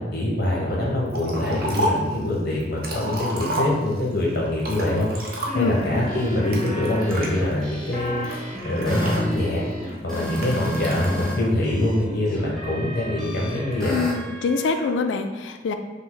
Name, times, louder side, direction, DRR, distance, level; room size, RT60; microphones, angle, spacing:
voice 1, 0.0-5.1 5.5-8.1 8.6-9.6 10.0-14.0, left 1 dB, 60° left, -4 dB, 0.9 m, -24 dB
Liquid, 1.1-2.1 2.6-4.1 4.6-5.8 6.5-7.3 7.9-9.6 10.4-11.1, right 1 dB, 55° right, 0.7 m, -30 dB
sound 1, 5.2-11.3 11.6-14.9, equal, 5° left, 0.9 m, -32 dB
voice 2, 13.9-15.7, left 4 dB, 80° left, 7 dB, 0.3 m, -24 dB
5.1 x 2.1 x 3.8 m, 1.2 s
head